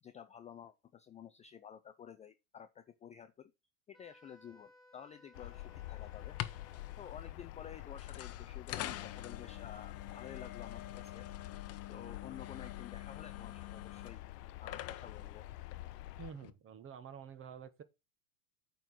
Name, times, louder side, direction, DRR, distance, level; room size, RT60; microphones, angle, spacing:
voice 1, 0.0-3.5 3.9-6.3 7.0-11.2 11.9-14.2 14.6-15.5, left 8 dB, 15° left, 0.4 m, -51 dB
Wind instrument woodwind instrument, 3.9-7.4, left 1 dB, ahead, 1.8 m, -63 dB
sound 1, 5.3-16.3, left 16 dB, 85° left, 0.7 m, -47 dB
sound 2, 6.2-16.5, left 13 dB, 30° left, 0.9 m, -47 dB
voice 2, 16.2-17.8, right 7 dB, 25° right, 1.2 m, -49 dB
8.9 x 3.9 x 6.3 m
supercardioid pair, 115°, 46 cm